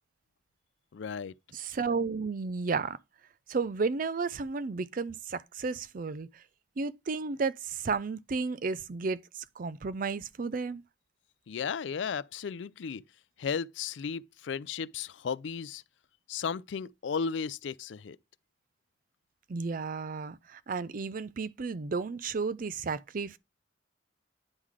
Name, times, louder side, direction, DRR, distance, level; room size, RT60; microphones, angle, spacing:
voice 1, 0.9-1.3 11.5-13.0 13.4-15.8 16.3-18.2, left 6 dB, 75° left, 0.4 m, -34 dB
voice 2, 1.5-3.0 3.5-6.4 6.8-10.8 19.5-23.4, right 4 dB, 45° right, 0.4 m, -33 dB
9.7 x 3.8 x 4.8 m
head